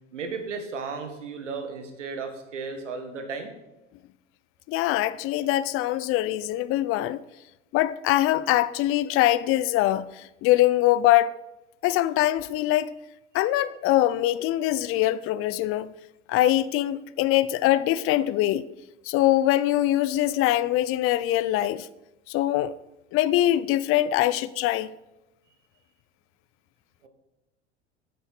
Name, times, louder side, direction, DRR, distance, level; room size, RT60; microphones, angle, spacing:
voice 1, 0.1-3.5 27.0-27.1, right 4 dB, 80° right, 1.6 m, -34 dB
voice 2, 4.7-7.2 7.7-11.3 11.8-12.9 13.3-15.9 16.3-18.7 19.1-21.9 22.3-22.7 23.1-24.9, left 14 dB, 40° left, 0.5 m, -23 dB
8.8 x 8.2 x 4.8 m
hypercardioid pair, 80°, 36 cm